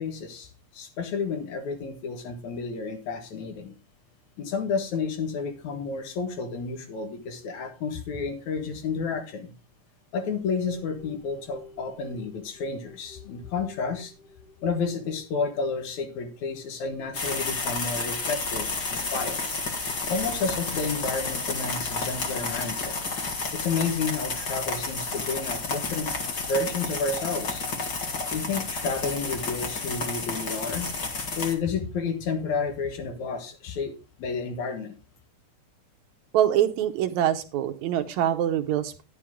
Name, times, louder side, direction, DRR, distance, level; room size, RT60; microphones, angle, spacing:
voice 1, 0.0-3.7 4.4-9.5 10.1-14.1 14.6-19.4 20.1-23.0 23.5-26.1 26.4-27.6 28.3-30.9 31.4-33.9 34.2-34.9, left 4 dB, 70° left, 6 dB, 2.7 m, -31 dB
sound 1, 10.2-17.7, left 4 dB, 90° left, 6.3 m, -52 dB
sound 2, 17.1-31.5, left 3 dB, 35° left, 1.9 m, -31 dB
voice 2, 36.3-39.0, right 11 dB, 75° right, 7 dB, 2.0 m, -24 dB
10.5 x 10.0 x 3.6 m, 0.29 s
omnidirectional pair, 3.6 m